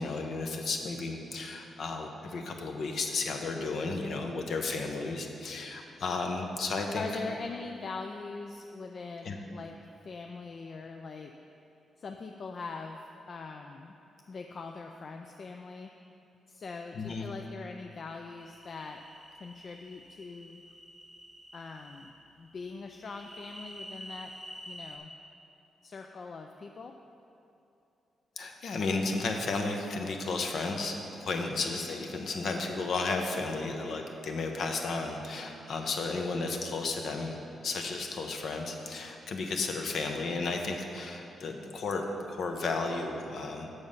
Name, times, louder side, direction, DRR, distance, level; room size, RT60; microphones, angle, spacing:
voice 1, 0.0-7.0 9.2-9.3 16.9-17.3 28.4-37.4 37.6-43.7, left 3 dB, 60° left, 3 dB, 0.8 m, -33 dB
voice 2, 6.9-9.8 10.0-11.3 12.0-13.0 13.3-13.9 14.3-15.9 16.5-19.0 19.4-20.6 21.5-22.1 22.4-24.3 24.7-25.1 25.8-26.9 31.5-31.8, left 4 dB, 45° left, 4 dB, 0.4 m, -42 dB
sound 1, 18.4-22.1 23.0-25.0, equal, 5° left, 1.2 m, -48 dB
7.0 x 6.4 x 5.5 m, 2.8 s
cardioid pair, 115°, 0 cm